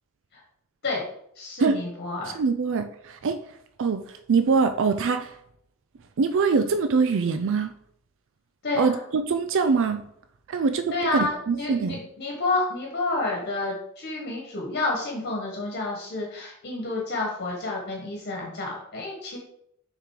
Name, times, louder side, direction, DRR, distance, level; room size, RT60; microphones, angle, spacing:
voice 1, 1.4-2.3 8.6-9.0 10.5-10.6 10.9-19.4, left 2 dB, 50° left, -1 dB, 1.3 m, -29 dB
voice 2, 2.3-3.4 3.8-5.3 6.2-7.7 8.7-10.0 10.5-12.0, right 4 dB, 65° right, 8 dB, 0.4 m, -23 dB
6.6 x 3.7 x 4.8 m, 0.70 s
head